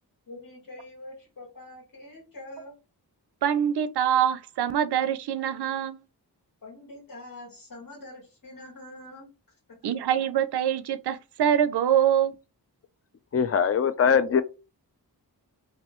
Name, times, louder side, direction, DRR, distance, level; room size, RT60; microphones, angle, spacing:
voice 1, 0.3-2.8 6.6-9.3 9.7-9.8, left 1 dB, 60° left, 1.8 m, -44 dB
voice 2, 3.4-6.0 9.8-12.4, right 9 dB, 80° right, 0.5 m, -24 dB
voice 3, 13.3-14.4, left 6 dB, 40° left, 0.5 m, -21 dB
3.0 x 2.7 x 3.0 m
wide cardioid pair, 70°, 39 cm